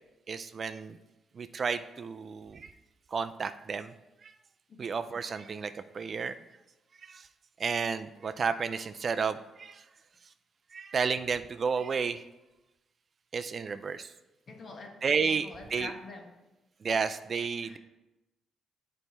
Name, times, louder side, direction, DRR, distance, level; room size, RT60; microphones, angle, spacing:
voice 1, 0.3-1.0 1.3-2.7 3.1-3.9 4.2-4.3 4.8-6.3 7.0-7.3 7.6-9.8 10.7-12.2 13.3-14.1 15.0-15.9 16.8-17.8, right 5 dB, 45° right, 10 dB, 0.4 m, -32 dB
voice 2, 14.5-15.0 15.4-16.4 17.6-17.8, left 3 dB, 45° left, 4 dB, 1.1 m, -46 dB
8.1 x 4.5 x 4.1 m, 0.98 s
cardioid pair, 90°, 0 cm